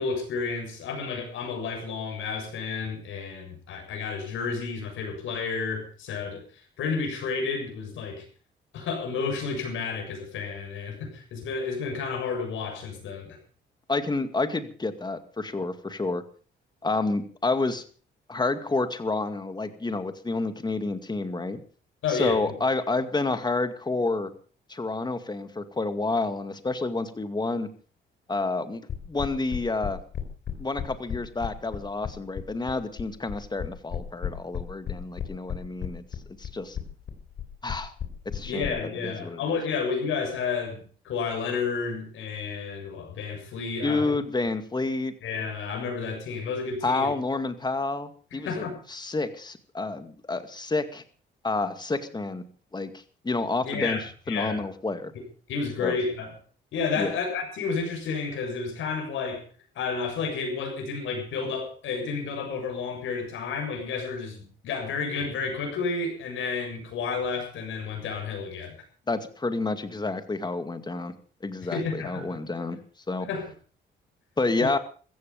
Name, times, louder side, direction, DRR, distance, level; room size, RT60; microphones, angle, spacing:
voice 1, 0.0-6.4 6.8-8.2 8.7-13.4 22.0-22.4 38.4-44.1 45.2-47.1 48.3-48.8 53.6-54.7 55.5-56.3 56.7-59.4 59.8-68.7 71.6-72.4 73.3-73.5 74.6-74.7, left 5 dB, 80° left, 3 dB, 7.2 m, -31 dB
voice 2, 13.9-16.2 16.8-17.8 18.3-21.6 22.1-24.3 24.7-27.7 28.3-28.8 29.1-30.0 30.6-36.0 36.4-36.8 37.6-37.9 38.3-38.8 39.0-39.6 43.8-45.1 46.8-51.0 51.4-52.4 52.7-54.0 54.3-55.1 55.8-56.0 57.0-57.2 69.1-71.1 71.4-72.8 73.1-73.3 74.4-74.8, left 3 dB, 20° left, 9 dB, 2.2 m, -29 dB
sound 1, 28.9-38.7, left 9 dB, 60° left, 3.4 m, -33 dB
15.5 x 15.0 x 5.4 m, 0.40 s
cardioid pair, 90°, 20 cm